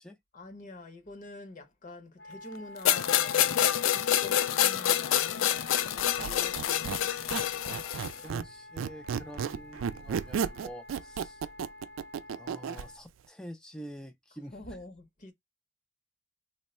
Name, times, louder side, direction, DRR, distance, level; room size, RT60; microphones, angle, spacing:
voice 1, 0.3-7.7 14.5-15.3, left 2 dB, 40° left, 0.8 m, -47 dB
Wind instrument woodwind instrument, 2.2-13.0, left 2 dB, 70° left, 1.0 m, -49 dB
sound 1, 2.8-8.2, left 11 dB, 90° left, 0.3 m, -27 dB
Squeak, 6.0-8.5 8.8-12.9, right 7 dB, 90° right, 0.3 m, -34 dB
voice 2, 7.6-11.4 12.4-14.5, equal, 5° left, 0.4 m, -47 dB
3.1 x 2.1 x 4.2 m
head